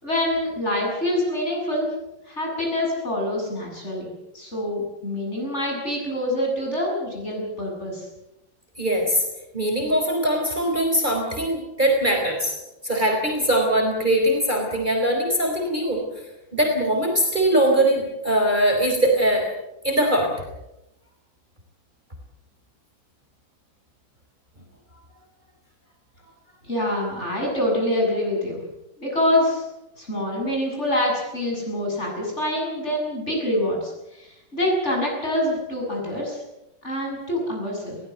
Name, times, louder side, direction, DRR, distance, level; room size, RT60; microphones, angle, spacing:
voice 1, 0.0-1.9 2.3-8.1 26.6-28.6 29.0-29.6 30.0-36.4 36.8-38.0, left 1 dB, 35° left, -1 dB, 8.1 m, -25 dB
voice 2, 8.8-9.2 9.5-12.5 12.8-16.0 16.5-19.5 19.8-20.3, right 1 dB, 25° right, 2 dB, 4.4 m, -21 dB
22.5 x 18.0 x 8.1 m, 0.90 s
omnidirectional pair, 2.1 m